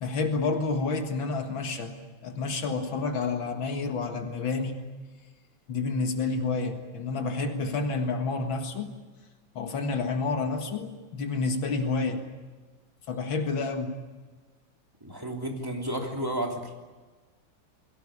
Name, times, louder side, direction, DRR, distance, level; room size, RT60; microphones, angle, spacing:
voice 1, 0.0-1.9 2.2-4.8 5.7-8.9 9.6-12.2 13.1-14.0, left 3 dB, 80° left, 5 dB, 2.5 m, -29 dB
voice 2, 15.0-16.7, right 1 dB, 10° right, 1 dB, 2.9 m, -32 dB
22.5 x 17.5 x 9.9 m, 1.3 s
omnidirectional pair, 2.1 m